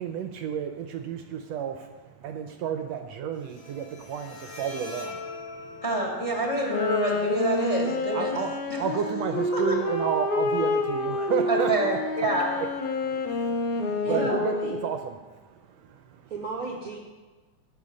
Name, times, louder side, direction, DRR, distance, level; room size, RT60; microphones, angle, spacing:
voice 1, 0.0-5.8 8.1-12.0 12.6-12.7 13.1-14.6 14.8-16.3, right 8 dB, 75° right, 6 dB, 1.7 m, -32 dB
Bowed string instrument, 3.3-10.3, left 3 dB, 45° left, 4.3 m, -44 dB
voice 2, 5.8-8.4 8.7-8.8 9.5-9.7 11.5-12.5 14.0-14.4, right 1 dB, 15° left, -1 dB, 1.6 m, -27 dB
Wind instrument woodwind instrument, 6.6-15.0, left 3 dB, 75° left, 2.4 m, -28 dB
voice 3, 14.0-14.7 16.3-17.0, right 5 dB, 55° right, 0 dB, 1.0 m, -33 dB
17.0 x 6.9 x 5.2 m, 1.3 s
omnidirectional pair, 3.3 m